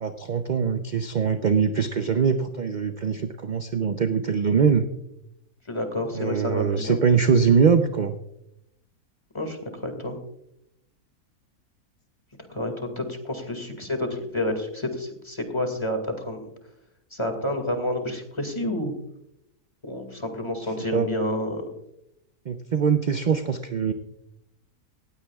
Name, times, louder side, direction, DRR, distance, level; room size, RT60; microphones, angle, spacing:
voice 1, 0.0-4.9 6.1-8.2 20.9-21.1 22.5-23.9, right 6 dB, 50° right, 8 dB, 0.5 m, -22 dB
voice 2, 5.7-7.0 9.3-10.2 12.5-16.4 17.1-18.9 19.8-21.7, left 1 dB, 20° left, 5 dB, 2.1 m, -29 dB
18.5 x 16.0 x 2.4 m, 0.81 s
omnidirectional pair, 1.6 m